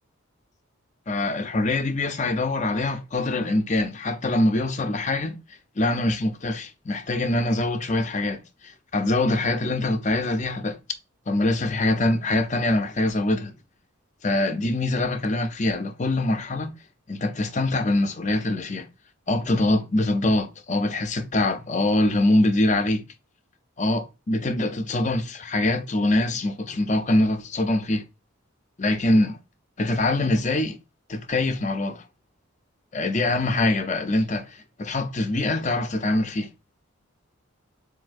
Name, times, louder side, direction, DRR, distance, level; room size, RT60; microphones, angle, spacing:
voice 1, 1.1-5.3 5.8-10.8 11.3-13.5 14.2-16.7 17.1-18.9 19.3-23.1 23.8-28.0 28.8-29.4 29.8-30.8 31.1-32.0 32.9-36.5, left 2 dB, 35° left, 0.6 m, -24 dB
7.5 x 2.7 x 2.6 m
head